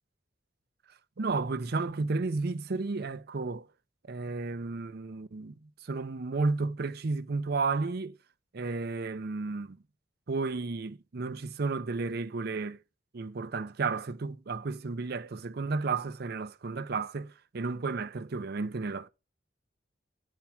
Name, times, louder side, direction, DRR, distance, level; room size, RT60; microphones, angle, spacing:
voice 1, 1.2-3.7 4.1-8.2 8.5-9.8 10.3-12.8 13.1-19.1, right 3 dB, 55° right, 0.6 m, -32 dB
7.3 x 4.6 x 5.7 m
head